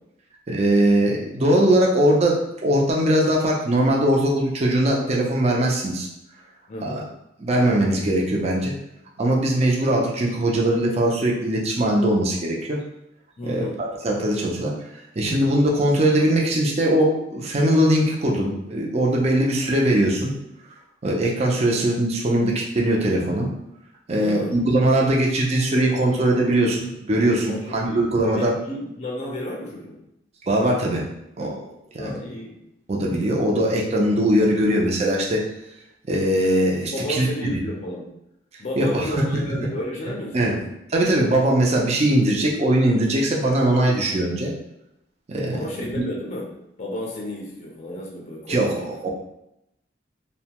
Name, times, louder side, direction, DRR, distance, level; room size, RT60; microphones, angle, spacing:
voice 1, 0.5-6.1 6.8-7.0 7.4-8.7 9.2-12.8 13.4-14.7 15.2-20.3 21.0-23.5 24.1-28.5 30.5-31.0 31.4-31.6 31.9-32.1 32.9-35.4 36.1-37.3 38.8-39.4 40.3-40.6 40.9-44.5 45.3-45.6 48.5-49.1, right 1 dB, 35° right, -2 dB, 0.5 m, -21 dB
voice 2, 6.7-7.0 13.4-13.8 24.1-24.6 27.5-28.1 28.3-30.0 32.0-32.6 36.9-38.1 38.6-40.5 45.5-49.1, left 1 dB, 35° left, -2 dB, 0.5 m, -32 dB
2.6 x 2.1 x 2.8 m, 0.84 s
head